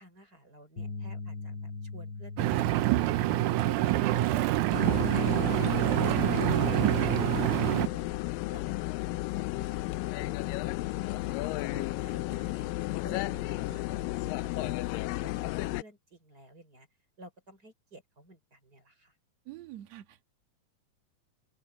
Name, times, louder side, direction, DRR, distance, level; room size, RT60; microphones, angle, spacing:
voice 1, 0.0-5.1 6.0-8.2 8.5-11.2 11.6-12.7 13.0-15.1 15.6-16.9 17.2-19.2, right 1 dB, 25° right, 5.7 m, -52 dB
sound 1, 0.8-7.0, left 3 dB, 35° left, 4.0 m, -43 dB
Engine, 2.4-7.9, right 15 dB, 75° right, 2.0 m, -26 dB
sound 2, 4.7-15.8, left 19 dB, 85° left, 2.3 m, -33 dB
voice 2, 5.0-5.9 13.3-13.8 19.5-20.4, right 10 dB, 55° right, 3.1 m, -41 dB
omnidirectional pair, 3.9 m